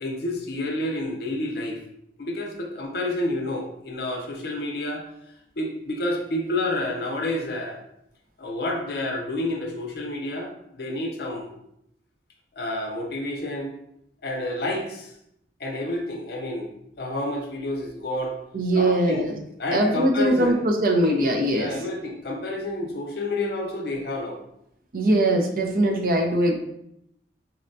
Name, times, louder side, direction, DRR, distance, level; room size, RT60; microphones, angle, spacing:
voice 1, 0.0-1.8 2.2-5.1 5.6-7.8 8.4-11.6 12.6-13.7 14.2-15.1 15.6-16.7 17.0-18.4 18.7-20.6 21.5-24.4, left 1 dB, 60° left, 2 dB, 0.5 m, -29 dB
voice 2, 18.5-19.3 19.7-21.7 24.9-26.5, right 1 dB, 50° right, 3 dB, 0.4 m, -21 dB
4.1 x 2.2 x 2.6 m, 0.77 s
head